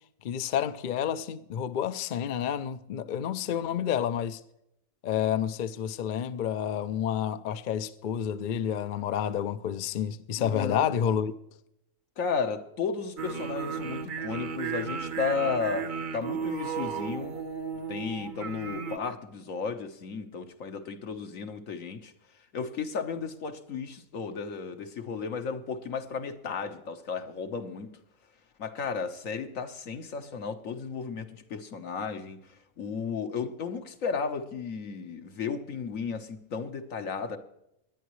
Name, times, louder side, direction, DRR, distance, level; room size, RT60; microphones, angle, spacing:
voice 1, 0.2-4.4 5.0-11.3, left 9 dB, 55° left, 0.5 m, -29 dB
voice 2, 10.4-10.9 12.2-17.3 17.9-22.1 22.5-27.9 28.6-32.4 32.8-37.4, left 5 dB, 75° left, 1.5 m, -34 dB
sound 1, 13.2-19.0, right 6 dB, 45° right, 0.8 m, -34 dB
19.0 x 11.0 x 3.1 m
omnidirectional pair, 1.4 m